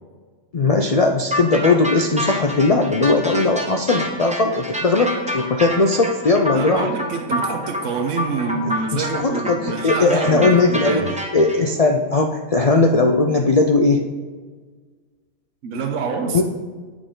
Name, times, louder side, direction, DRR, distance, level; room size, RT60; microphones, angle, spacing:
voice 1, 0.5-6.9 8.7-11.0 11.3-14.0 16.3-16.4, left 3 dB, 60° left, 3 dB, 0.4 m, -18 dB
sound 1, 1.3-11.6, equal, 5° right, 0.9 m, -28 dB
voice 2, 6.5-11.2 15.6-16.4, right 4 dB, 70° right, 3 dB, 1.3 m, -26 dB
8.8 x 6.6 x 3.8 m, 1.5 s
omnidirectional pair, 1.3 m